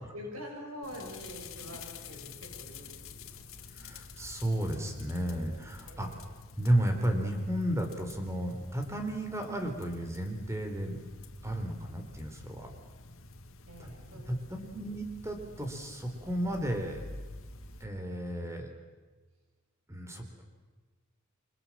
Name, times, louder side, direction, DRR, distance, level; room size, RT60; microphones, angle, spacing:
voice 1, 0.0-3.9 5.9-6.2 13.7-14.7, equal, 85° right, 0 dB, 8.0 m, -46 dB
sound 1, 0.8-17.8, left 3 dB, 70° left, 2.2 m, -49 dB
voice 2, 3.7-6.1 6.6-11.0 11.4-12.7 13.8-13.9 14.3-17.1 17.8-18.7 19.9-20.4, right 1 dB, 15° right, 4 dB, 4.1 m, -33 dB
30.0 x 25.0 x 7.6 m, 1.3 s
head